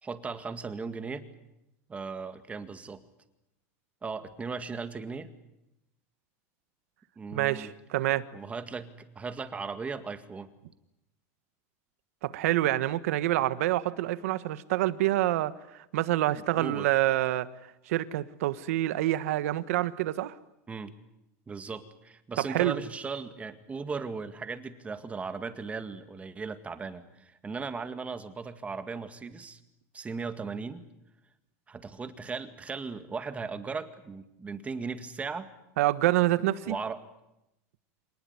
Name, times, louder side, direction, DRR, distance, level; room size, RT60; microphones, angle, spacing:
voice 1, 0.0-1.3 1.9-3.0 4.0-5.3 7.2-7.7 8.3-10.5 16.6-16.9 20.7-20.9 21.5-29.6 29.9-30.8 31.7-35.5 36.6-37.0, right 4 dB, 15° right, 2.0 m, -37 dB
voice 2, 7.3-8.2 12.2-15.5 15.9-17.5 17.9-20.3 22.4-22.8 35.8-36.8, right 15 dB, 85° right, 1.4 m, -27 dB
26.5 x 19.5 x 9.6 m
supercardioid pair, 135°, 8 cm